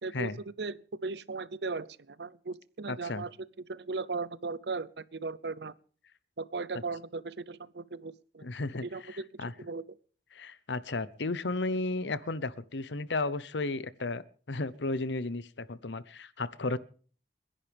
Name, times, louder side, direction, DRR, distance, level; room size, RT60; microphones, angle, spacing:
voice 1, 0.0-3.3 3.7-5.7 6.4-8.5 8.8-9.2 9.6-9.8, right 4 dB, 70° right, 0.7 m, -37 dB
voice 2, 2.9-3.2 8.4-9.5 10.3-16.8, left 3 dB, 75° left, 0.9 m, -34 dB
30.0 x 11.0 x 3.5 m
head